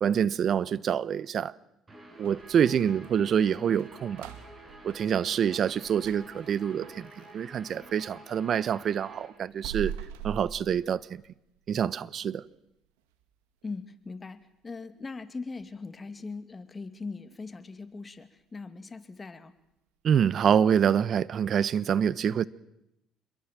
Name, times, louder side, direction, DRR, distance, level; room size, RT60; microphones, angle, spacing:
voice 1, 0.0-1.5 2.2-4.3 4.8-9.9 10.2-11.2 11.7-12.4 20.0-22.5, right 8 dB, 55° right, 1.0 m, -26 dB
Guitar, 1.9-9.3, right 1 dB, 25° right, 7.9 m, -50 dB
sound 1, 2.2-8.2 8.6-11.4 11.8-11.9 12.3-12.5 13.0-13.3 13.6-13.7 14.3-14.4, right 9 dB, 90° right, 2.2 m, -43 dB
voice 2, 13.6-19.6, left 4 dB, 30° left, 2.5 m, -40 dB
27.5 x 22.0 x 7.6 m
supercardioid pair, 70°, 0 cm